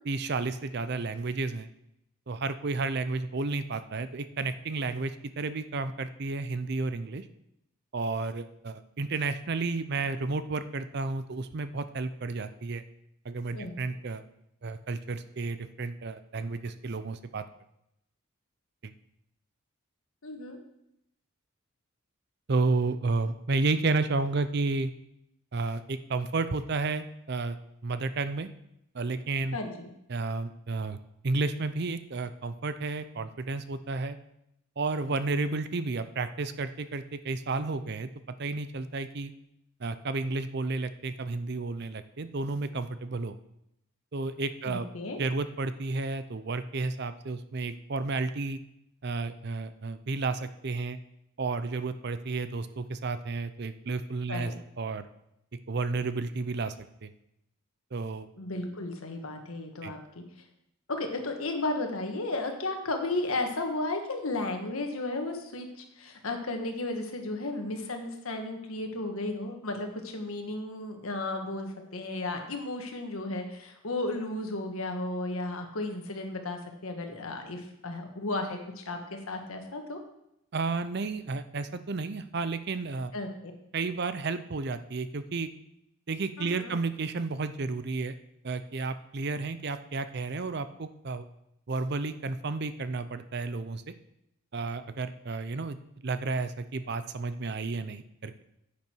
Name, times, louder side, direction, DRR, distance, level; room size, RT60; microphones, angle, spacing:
voice 1, 0.0-1.7 2.3-7.2 7.9-12.8 13.2-14.2 14.6-17.4 18.8-18.9 22.5-24.9 25.5-27.6 27.8-28.5 28.9-29.6 30.1-31.0 31.2-34.2 34.8-38.1 38.4-39.3 39.8-43.4 44.1-44.9 45.2-48.6 49.0-51.0 51.4-55.1 55.7-56.7 57.0-57.1 57.9-58.3 59.8-59.9 80.5-83.1 83.7-85.5 86.1-88.2 88.4-91.3 91.7-93.9 94.5-98.4, right 3 dB, 50° right, 12 dB, 0.6 m, -32 dB
voice 2, 20.2-20.6 29.5-29.9 44.7-45.2 54.3-54.6 58.4-60.2 60.9-80.0 83.1-83.5 86.4-86.8, left 2 dB, 80° left, 4 dB, 1.6 m, -34 dB
10.5 x 8.4 x 4.6 m, 0.81 s
head